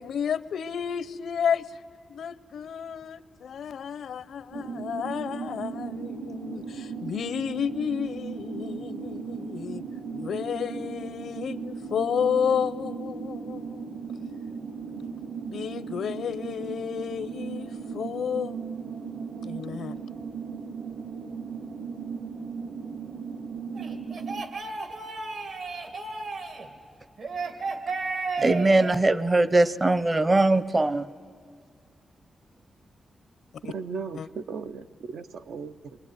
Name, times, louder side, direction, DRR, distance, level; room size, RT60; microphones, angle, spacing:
voice 1, 0.0-1.8 2.1-9.8 10.1-13.8 15.5-18.6 19.4-20.0 33.6-33.7 34.1-34.3, left 7 dB, 85° left, 0.7 m, -31 dB
sound 1, 4.5-24.4, right 5 dB, 50° right, 1.0 m, -37 dB
sound 2, 23.8-26.7 27.2-29.0, right 3 dB, 65° right, 2.2 m, -33 dB
voice 2, 28.4-31.1, right 2 dB, 20° right, 0.7 m, -21 dB
voice 3, 33.6-36.0, right 5 dB, 85° right, 0.8 m, -37 dB
27.0 x 22.5 x 9.5 m
wide cardioid pair, 135°, 0 cm